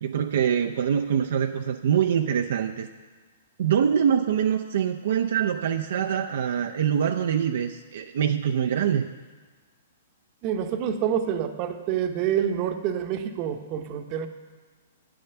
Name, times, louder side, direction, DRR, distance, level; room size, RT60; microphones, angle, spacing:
voice 1, 0.0-2.9 3.6-9.1, right 8 dB, 65° right, 5 dB, 0.5 m, -24 dB
voice 2, 10.4-14.3, right 9 dB, 40° right, 8 dB, 0.9 m, -27 dB
8.6 x 7.8 x 6.9 m, 1.4 s
hypercardioid pair, 125°, 0 cm